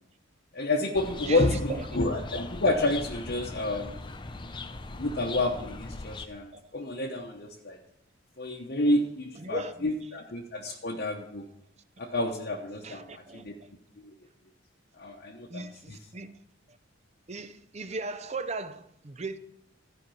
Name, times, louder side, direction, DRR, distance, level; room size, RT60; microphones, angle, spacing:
voice 1, 0.5-4.0 5.0-7.8 8.4-11.4 12.0-13.5 14.0-14.1 14.9-16.0, left 2 dB, 50° left, 0.9 m, -29 dB
sound 1, 0.9-6.3, left 2 dB, 20° left, 0.5 m, -40 dB
voice 2, 1.2-1.9 3.8-3.9 6.5-6.7 9.4-9.9 10.7-10.8 12.8-13.7 15.5-16.4 17.3-19.4, right 3 dB, 30° right, 0.5 m, -38 dB
13.0 x 5.2 x 6.9 m
head